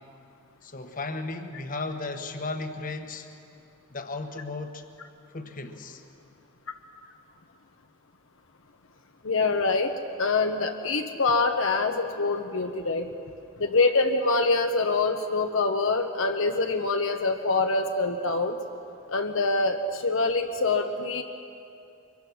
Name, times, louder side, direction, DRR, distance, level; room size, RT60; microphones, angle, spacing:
voice 1, 0.6-3.3 3.9-4.8 5.3-6.0, left 3 dB, 40° left, 6 dB, 1.3 m, -35 dB
voice 2, 9.2-13.1 13.6-18.6 19.1-21.2, left 3 dB, 65° left, 5 dB, 1.0 m, -25 dB
24.0 x 22.5 x 6.2 m, 2.6 s
head